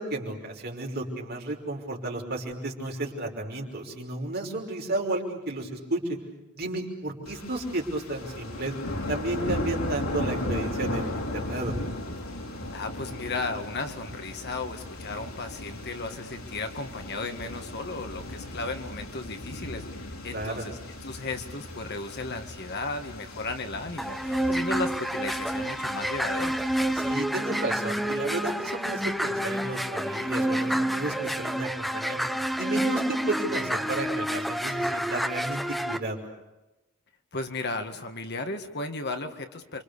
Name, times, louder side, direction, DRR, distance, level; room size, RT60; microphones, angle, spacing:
voice 1, 0.0-6.2 6.6-8.8 9.1-11.7 20.3-20.7 26.9-32.2 32.6-35.6 35.9-36.2, right 2 dB, 45° right, 0 dB, 5.6 m, -32 dB
sound 1, 7.3-27.1, left 1 dB, 75° left, 5.2 m, -37 dB
voice 2, 12.7-19.9 20.2-26.6 37.3-39.8, left 3 dB, 50° left, 6 dB, 2.0 m, -35 dB
sound 2, 24.0-36.0, right 1 dB, ahead, 1.1 m, -29 dB
29.5 x 26.0 x 6.9 m, 1.0 s
head